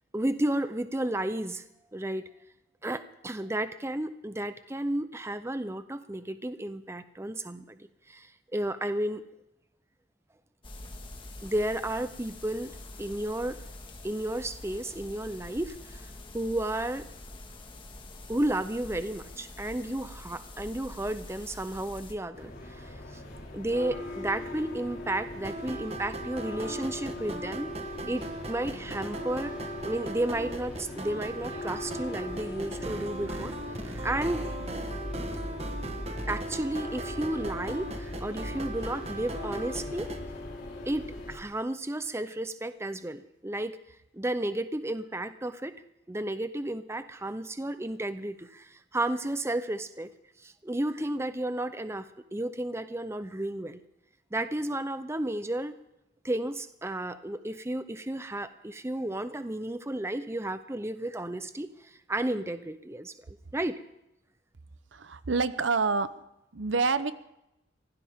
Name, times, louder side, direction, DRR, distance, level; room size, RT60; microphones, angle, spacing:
voice 1, 0.1-1.6 1.9-2.3 2.8-9.2 11.4-13.6 14.0-17.1 18.3-23.2 23.5-27.7 28.1-29.5 29.8-33.6 33.8-34.5 36.3-40.1 40.9-43.8 44.1-45.8 46.1-50.1 50.4-52.1 52.3-53.8 54.3-55.7 56.2-63.8, right 1 dB, 15° right, 11 dB, 0.7 m, -33 dB
sound 1, 10.6-22.1, left 2 dB, 25° left, 1.6 m, -45 dB
sound 2, 22.3-41.4, left 1 dB, 50° left, 3.9 m, -39 dB
sound 3, 25.4-40.2, right 2 dB, 35° right, 1.2 m, -39 dB
voice 2, 64.9-66.2 66.5-67.1, right 4 dB, 75° right, 14 dB, 0.8 m, -27 dB
23.5 x 16.5 x 3.6 m, 0.87 s
head